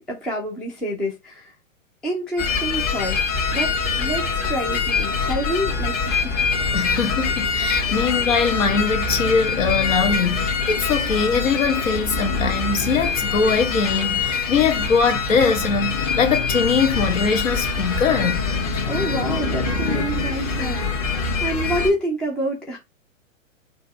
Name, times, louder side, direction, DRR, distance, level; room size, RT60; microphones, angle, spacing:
voice 1, 0.0-1.5 2.0-3.2 3.5-6.5 7.9-8.1 18.9-22.8, equal, ahead, 0.4 m, -28 dB
sound 1, 2.4-21.9, left 4 dB, 35° left, 1.5 m, -24 dB
voice 2, 6.7-18.4, left 5 dB, 65° left, 1.4 m, -22 dB
4.4 x 2.9 x 4.1 m
figure-of-eight pair, 115°, 41 cm